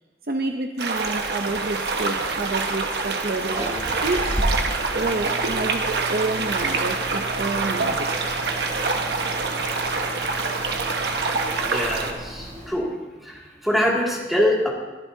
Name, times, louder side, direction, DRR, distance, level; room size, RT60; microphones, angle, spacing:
voice 1, 0.3-8.1, right 2 dB, 55° right, 4 dB, 0.7 m, -29 dB
sound 1, 0.8-12.1, right 3 dB, 80° right, 1.3 m, -26 dB
sound 2, 0.9-12.7, equal, 40° right, 3.1 m, -34 dB
voice 2, 11.6-12.9 13.2-14.7, left 1 dB, ahead, -4 dB, 2.3 m, -24 dB
22.0 x 11.5 x 2.8 m, 1.2 s
head